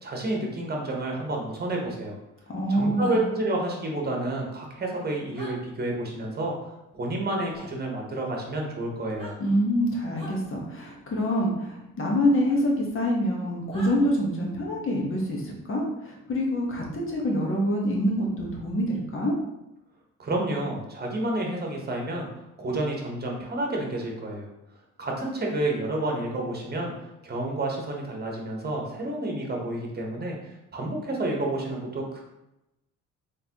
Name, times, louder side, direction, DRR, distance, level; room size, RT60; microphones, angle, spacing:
voice 1, 0.0-2.2 2.7-6.5 6.9-9.4 20.2-22.3 22.6-24.5 25.0-32.2, right 1 dB, 30° right, 0 dB, 1.1 m, -30 dB
voice 2, 2.5-3.3 9.4-19.3, equal, 45° left, -1 dB, 1.2 m, -26 dB
sound 1, 3.0-3.2 5.3-5.5 7.5-7.7 9.0-9.4 10.1-10.4 12.5-12.6 13.7-13.9, equal, 20° left, 1.1 m, -42 dB
3.9 x 3.3 x 2.9 m, 0.93 s
cardioid pair, 90°, 30 cm